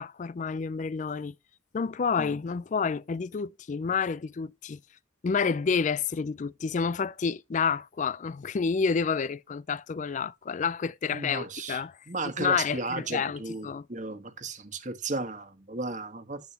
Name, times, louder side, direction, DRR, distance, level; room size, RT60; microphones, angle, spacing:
voice 1, 0.0-1.3 1.7-4.8 5.2-12.0 12.4-13.9, left 5 dB, 45° left, 0.4 m, -29 dB
voice 2, 11.1-11.8 12.1-16.4, right 3 dB, 45° right, 1.4 m, -34 dB
10.0 x 8.0 x 2.9 m
head